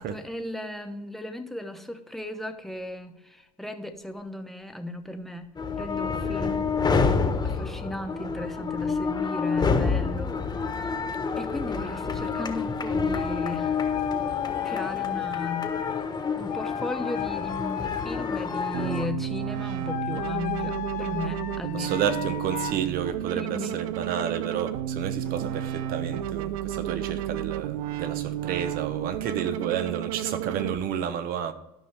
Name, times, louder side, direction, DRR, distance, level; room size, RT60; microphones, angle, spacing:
voice 1, 0.0-5.5 5.8-6.7 7.4-10.8 11.3-13.9 14.6-15.7 16.1-22.2 23.3-23.8, left 2 dB, ahead, 1.1 m, -36 dB
sound 1, 5.6-19.1, left 5 dB, 25° left, 1.3 m, -28 dB
sound 2, 13.1-16.1 16.5-19.1 19.8-22.7, left 13 dB, 50° left, 0.7 m, -34 dB
sound 3, 18.7-30.7, right 11 dB, 85° right, 0.5 m, -32 dB
voice 2, 21.7-31.5, right 8 dB, 60° right, 1.0 m, -31 dB
13.0 x 5.5 x 3.4 m
supercardioid pair, 90°, 17 cm